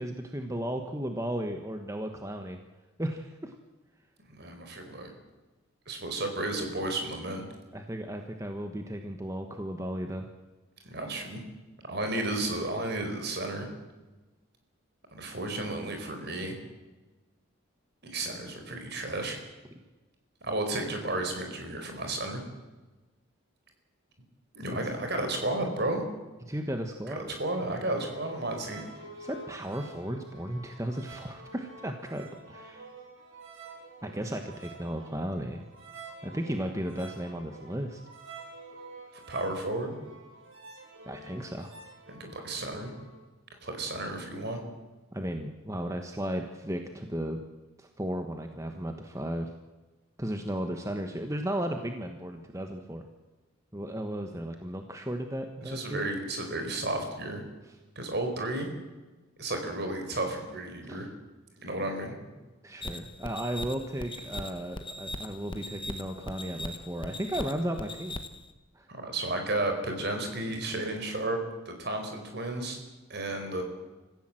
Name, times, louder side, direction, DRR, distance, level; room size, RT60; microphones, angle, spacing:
voice 1, 0.0-2.6 3.0-3.5 7.7-10.3 26.5-27.2 29.2-32.9 34.0-35.6 36.2-38.0 41.1-41.8 45.1-47.4 47.8-49.5 50.2-53.0 53.7-56.1 57.7-57.8 60.8-61.0 62.6-68.2 68.7-68.9, right 1 dB, 15° right, 5 dB, 1.3 m, -35 dB
voice 2, 4.3-5.1 5.9-7.4 10.8-11.4 11.8-13.7 15.1-16.6 18.0-19.4 20.4-22.4 24.5-26.0 27.1-28.9 39.3-40.0 42.2-42.9 43.6-44.6 55.7-57.4 58.0-58.7 59.4-61.1 61.6-62.1 68.9-71.4 71.6-72.8 73.1-73.6, right 2 dB, 50° right, 5 dB, 4.6 m, -33 dB
sound 1, 27.8-43.2, right 3 dB, 65° right, 7.5 m, -48 dB
sound 2, 62.8-68.5, left 1 dB, 25° left, 1.2 m, -40 dB
26.0 x 15.5 x 7.7 m, 1.2 s
head